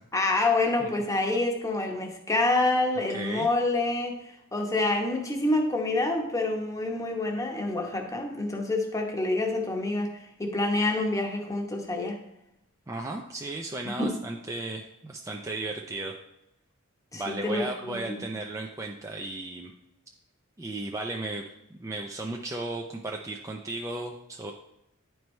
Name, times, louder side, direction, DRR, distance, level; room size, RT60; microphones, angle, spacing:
voice 1, 0.1-12.2 14.0-14.1 17.1-18.2, left 2 dB, 15° left, 2 dB, 0.9 m, -27 dB
voice 2, 3.1-3.5 12.9-16.1 17.1-19.7 20.6-24.5, right 2 dB, 15° right, 1 dB, 0.4 m, -35 dB
10.5 x 4.6 x 3.2 m, 0.85 s
head